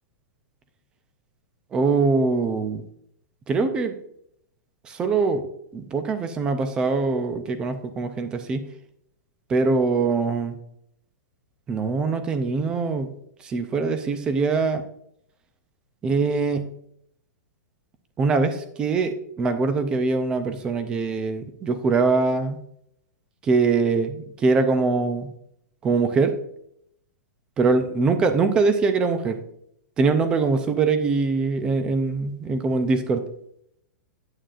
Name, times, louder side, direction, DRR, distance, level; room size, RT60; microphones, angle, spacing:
voice 1, 1.7-2.8 3.5-3.9 4.8-5.4 5.7-8.6 9.5-10.6 11.7-13.1 13.4-14.8 16.0-16.7 18.2-22.6 23.4-25.3 25.8-26.4 27.6-29.4 30.0-33.2, right 4 dB, 10° right, 10 dB, 0.4 m, -23 dB
8.9 x 8.8 x 2.4 m, 0.72 s
supercardioid pair, 180°, 10 cm